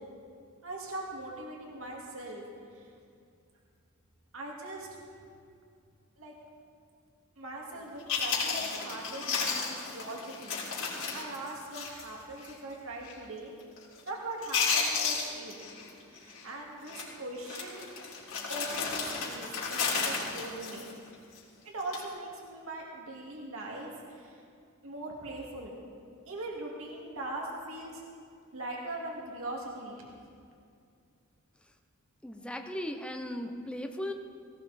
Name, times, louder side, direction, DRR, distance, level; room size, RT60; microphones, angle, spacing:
voice 1, 0.6-2.4 2.7-2.9 4.3-4.9 6.2-6.3 7.4-10.6 11.1-13.5 14.1-15.6 16.1-17.9 18.5-20.8 21.6-24.4 24.8-25.8 26.3-28.0 28.5-30.1, right 2 dB, 70° right, -2 dB, 2.3 m, -41 dB
Chewing mastication, 7.8-7.9 8.1-12.1 12.4-12.5 13.0-13.3 13.6-14.1 14.4-15.9 16.2-16.4 16.9-17.1 17.4-21.4 21.8-22.1, left 5 dB, 65° left, 3.6 m, -33 dB
voice 2, 32.2-34.1, left 1 dB, 5° left, 5 dB, 0.8 m, -37 dB
18.0 x 18.0 x 4.2 m, 2.4 s
head